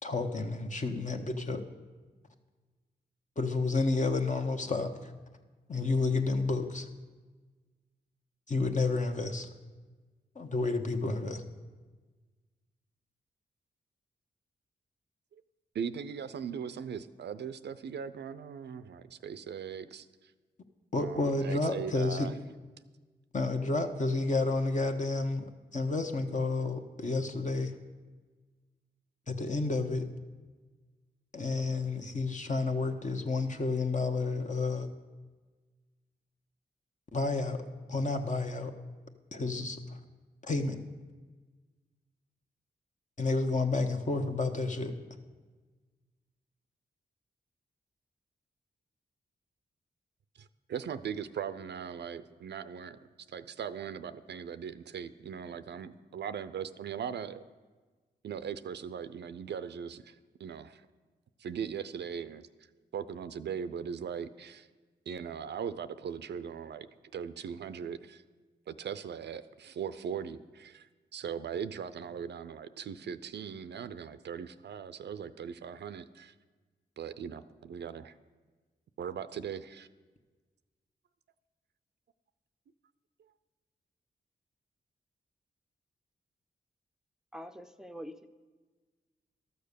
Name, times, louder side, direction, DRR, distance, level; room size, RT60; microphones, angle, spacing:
voice 1, 0.0-1.6 3.4-4.9 5.7-6.9 8.5-9.5 10.3-11.4 20.9-22.3 23.3-27.7 29.3-30.1 31.3-34.9 37.1-37.6 37.9-38.7 39.3-40.0 40.4-40.8 43.2-44.9, left 3 dB, 40° left, 5 dB, 1.2 m, -30 dB
voice 2, 15.7-20.3 21.0-22.3 50.4-53.0 53.3-57.4 58.2-60.8 61.4-62.5 62.9-64.7 65.1-68.2 68.7-76.3 77.0-78.1 79.0-79.9, right 7 dB, 70° right, 13 dB, 0.5 m, -39 dB
voice 3, 87.3-88.3, equal, 5° right, 9 dB, 0.6 m, -44 dB
12.5 x 6.7 x 6.8 m, 1.3 s
supercardioid pair, 45°, 19 cm